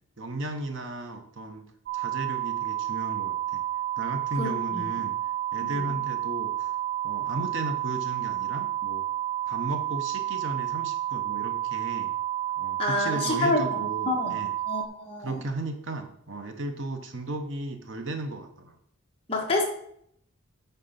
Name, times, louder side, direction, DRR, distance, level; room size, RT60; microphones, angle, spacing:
voice 1, 0.2-1.7 1.9-3.6 4.0-5.2 5.5-6.7 7.0-9.1 9.5-12.1 12.6-14.5 15.2-18.8, right 2 dB, 60° right, 5 dB, 1.1 m, -35 dB
sound 1, 1.9-14.9, right 13 dB, 45° right, 0.7 m, -30 dB
voice 2, 4.4-4.8 5.8-5.9 12.8-14.4 14.7-15.4 19.3-19.6, left 2 dB, 25° left, 0 dB, 1.5 m, -28 dB
9.3 x 4.1 x 5.8 m, 0.69 s
head